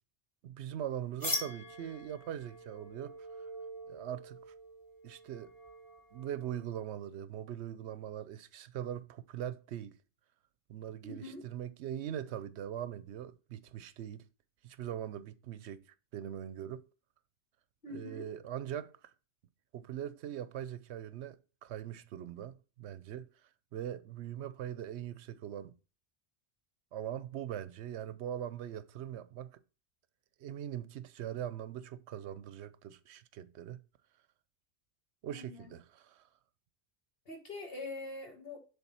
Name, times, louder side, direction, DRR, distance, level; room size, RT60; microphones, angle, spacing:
voice 1, 0.4-3.5 3.9-4.4 5.0-5.5 6.1-10.0 10.7-14.2 14.6-15.8 16.1-16.8 17.9-19.1 19.7-23.3 23.7-25.7 26.9-29.6 30.4-33.8 35.2-36.3, right 10 dB, 75° right, 0.8 m, -41 dB
sound 1, 1.2-6.8, left 1 dB, 20° left, 1.5 m, -43 dB
voice 2, 11.0-11.4 17.8-18.3 35.3-35.7 37.3-38.6, left 2 dB, 55° left, 2.0 m, -44 dB
7.2 x 3.7 x 5.4 m
omnidirectional pair, 1.2 m